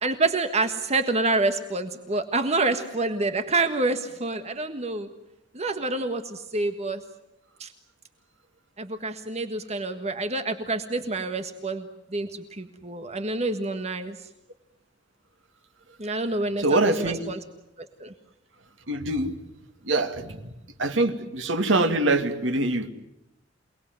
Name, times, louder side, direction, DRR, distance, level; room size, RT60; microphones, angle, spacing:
voice 1, 0.0-5.1 5.5-7.0 7.6-7.7 8.8-14.3 16.0-17.4 17.8-18.1, right 3 dB, 35° right, 8 dB, 1.5 m, -27 dB
voice 2, 16.6-17.2 18.9-19.3 19.8-20.5 20.8-22.9, right 2 dB, 80° right, 7 dB, 2.4 m, -24 dB
28.5 x 20.0 x 9.5 m, 0.88 s
head